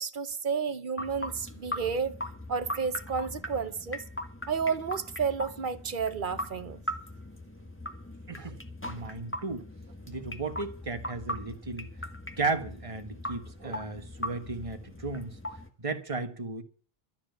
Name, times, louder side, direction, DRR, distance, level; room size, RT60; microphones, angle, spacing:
voice 1, 0.0-2.1 2.5-4.0 4.5-6.8 8.3-8.5 13.6-13.8, right 6 dB, 55° right, 1.1 m, -31 dB
sound 1, 1.0-15.7, left 1 dB, 10° left, 1.5 m, -40 dB
voice 2, 8.3-9.7 10.1-11.9 12.4-15.4 15.8-16.6, right 3 dB, 35° right, 1.6 m, -35 dB
13.0 x 7.4 x 9.2 m
omnidirectional pair, 1.0 m